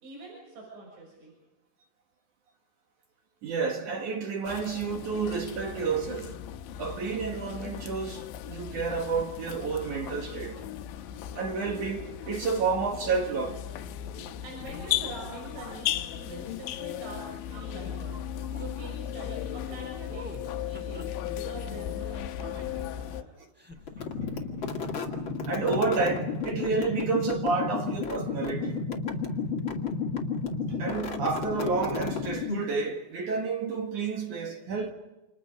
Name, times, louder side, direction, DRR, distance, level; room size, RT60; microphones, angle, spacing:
voice 1, 0.0-1.3 14.4-23.3, right 2 dB, 75° right, 8.9 m, -44 dB
voice 2, 3.4-6.4 6.8-10.6 11.3-13.6 14.2-14.3 15.6-15.8 25.5-28.8 30.7-34.9, right 4 dB, 55° right, 2.3 m, -30 dB
sound 1, 4.4-23.2, left 11 dB, 75° left, 3.2 m, -36 dB
sound 2, 18.5-18.7 20.1-21.3 22.0-23.0 23.5-24.0, equal, 10° right, 0.6 m, -47 dB
sound 3, 23.8-32.8, left 4 dB, 40° left, 1.8 m, -32 dB
29.5 x 28.5 x 5.3 m
omnidirectional pair, 5.5 m